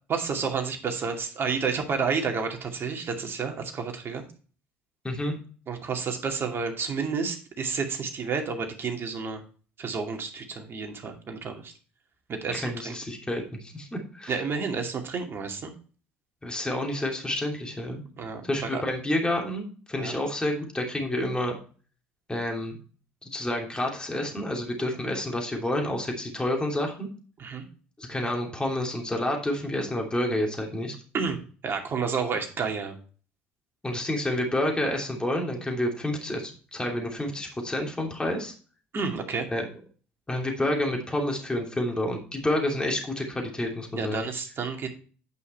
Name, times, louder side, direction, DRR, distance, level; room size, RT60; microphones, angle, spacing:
voice 1, 0.1-4.2 5.7-9.4 9.8-11.7 12.3-12.9 14.3-15.7 18.2-18.4 18.7-18.8 20.0-20.1 27.4-27.6 31.1-33.0 38.9-39.5 43.9-44.9, right 5 dB, 40° right, 3 dB, 2.4 m, -30 dB
voice 2, 5.0-5.3 12.5-14.3 16.4-18.0 18.4-21.5 22.3-22.8 23.2-27.1 28.0-30.9 33.8-38.5 39.5-39.7 40.3-44.2, left 1 dB, 15° left, 1 dB, 3.0 m, -29 dB
9.6 x 5.7 x 4.4 m, 0.39 s
hypercardioid pair, 65°, 6 cm